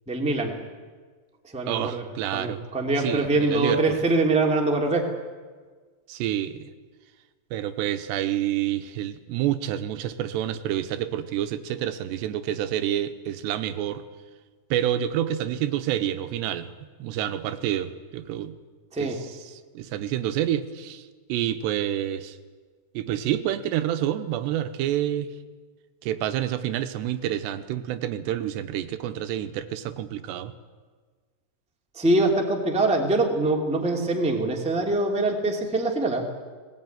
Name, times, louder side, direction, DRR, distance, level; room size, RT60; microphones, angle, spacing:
voice 1, 0.1-0.6 1.5-5.1 18.9-19.2 31.9-36.3, right 2 dB, ahead, 1 dB, 1.5 m, -24 dB
voice 2, 1.7-2.6 3.0-4.0 6.1-6.7 7.5-14.0 14.7-16.7 17.0-18.5 19.0-19.1 19.5-22.4 22.9-25.3 26.0-30.5, right 11 dB, 90° right, 10 dB, 3.1 m, -28 dB
19.5 x 19.0 x 9.4 m, 1.5 s
omnidirectional pair, 4.9 m